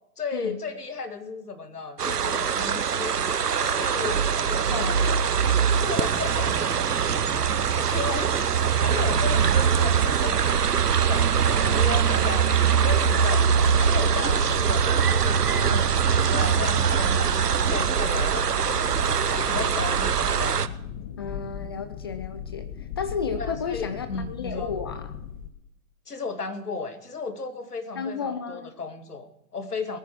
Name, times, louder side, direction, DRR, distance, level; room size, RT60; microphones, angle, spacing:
voice 1, 0.2-3.2 3.6-4.9 5.7-6.8 7.8-8.4 8.8-18.7 19.2-20.7 23.4-24.7 26.1-30.0, left 4 dB, 85° left, 9 dB, 1.9 m, -35 dB
sound 1, 2.0-20.7, right 7 dB, 90° right, 0.8 m, -22 dB
voice 2, 12.0-12.4 15.7-15.9 21.2-25.1 28.0-28.7, left 6 dB, 20° left, 11 dB, 0.4 m, -33 dB
sound 2, 13.4-25.5, left 9 dB, 35° left, 1.2 m, -38 dB
21.5 x 9.5 x 4.5 m, 0.80 s
figure-of-eight pair, 125°, 45 cm